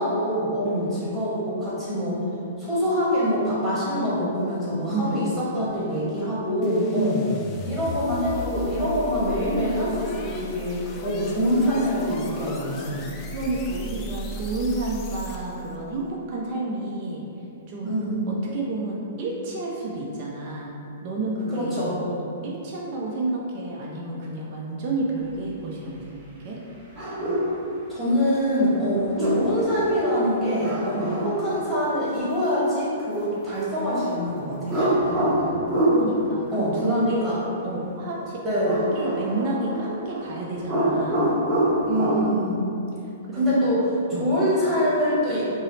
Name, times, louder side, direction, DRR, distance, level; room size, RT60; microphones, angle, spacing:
voice 1, 0.0-2.2 2.6-7.2 7.7-13.0 17.8-18.3 21.5-22.0 27.9-34.8 36.5-37.4 38.4-38.8 41.8-42.7 43.3-43.9 44.2-45.5, equal, 10° right, -11 dB, 1.4 m, -25 dB
voice 2, 0.6-1.0 4.9-5.2 6.9-7.2 13.3-17.2 17.7-18.0 18.3-20.7 21.0-21.7 22.1-26.6 30.9-31.2 35.1-35.4 35.9-37.2 37.6-41.3 43.0-43.7 44.1-44.3, right 2 dB, 40° right, -4 dB, 0.5 m, -30 dB
sound 1, 6.6-15.7, equal, 25° left, 0.4 m, -36 dB
sound 2, 26.9-27.5 29.0-29.6 30.6-31.7 34.7-36.0 38.7-40.3 40.5-42.2, right 1 dB, 25° right, 1.1 m, -25 dB
5.3 x 2.0 x 3.2 m, 2.7 s
hypercardioid pair, 145°, 0 cm